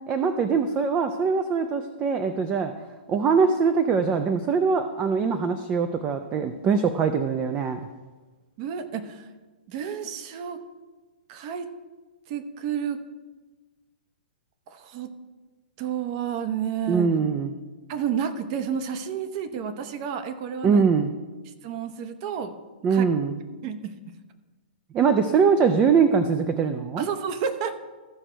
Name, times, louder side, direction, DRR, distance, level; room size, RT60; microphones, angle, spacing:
voice 1, 0.1-2.7 3.1-7.8 16.9-17.5 20.6-21.1 22.8-23.4 24.9-27.1, right 5 dB, 20° right, 8 dB, 0.5 m, -22 dB
voice 2, 8.6-9.3 9.7-10.6 11.3-11.7 12.3-13.0 14.7-15.1 15.8-17.1 17.9-20.8 21.6-22.6 22.9-23.0 23.6-23.9 27.0-27.8, right 8 dB, 40° right, 9 dB, 0.9 m, -30 dB
14.5 x 5.0 x 4.5 m, 1.3 s
hypercardioid pair, 145°, 6 cm